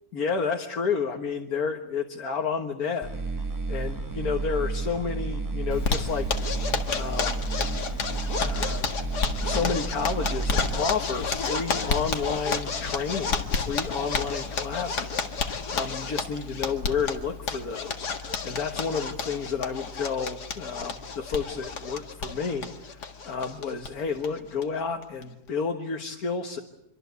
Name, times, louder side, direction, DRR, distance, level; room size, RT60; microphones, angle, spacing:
voice 1, 0.1-3.1 3.7-6.3 6.9-7.4 8.4-8.9 9.4-26.6, left 5 dB, 65° left, 3 dB, 2.0 m, -31 dB
sound 1, 3.0-10.8, right 3 dB, 15° right, 1.4 m, -31 dB
Zipper (clothing), 5.7-23.9 24.2-24.3 24.6-24.7 25.0-25.5, left 5 dB, 85° left, 2.4 m, -31 dB
25.5 x 24.0 x 8.2 m, 0.81 s
omnidirectional pair, 1.7 m